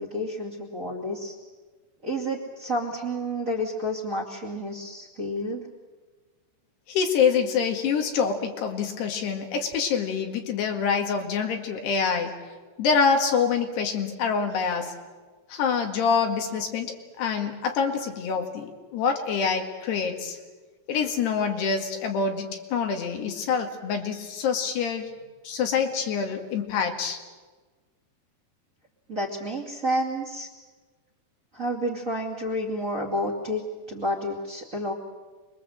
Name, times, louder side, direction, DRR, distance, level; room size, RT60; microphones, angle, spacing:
voice 1, 0.0-1.4 2.0-5.6 29.1-30.5 31.5-33.6 33.9-34.9, equal, 25° right, -2 dB, 2.3 m, -30 dB
voice 2, 6.9-12.3 12.8-14.9 15.5-20.4 20.9-22.5 22.7-25.1 25.5-27.2, left 6 dB, 80° left, 4 dB, 4.1 m, -26 dB
26.5 x 22.0 x 7.9 m, 1.3 s
omnidirectional pair, 4.8 m